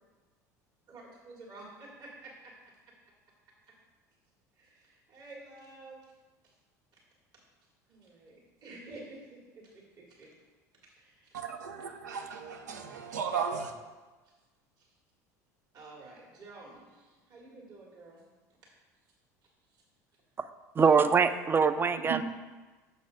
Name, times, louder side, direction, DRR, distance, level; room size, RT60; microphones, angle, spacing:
voice 1, 0.9-2.5 4.6-6.0 6.4-6.5 6.9-7.0 7.9-10.3 10.8-11.4 14.8-14.9 15.7-18.2 19.7-19.8 20.8-20.9, right 2 dB, 50° right, -4 dB, 1.9 m, -50 dB
voice 2, 11.3-13.7 22.0-22.2, right 7 dB, 85° right, 5 dB, 0.5 m, -35 dB
voice 3, 20.8-22.2, right 5 dB, 25° right, 11 dB, 0.4 m, -23 dB
6.7 x 4.1 x 5.1 m, 1.3 s
hypercardioid pair, 75°, 9 cm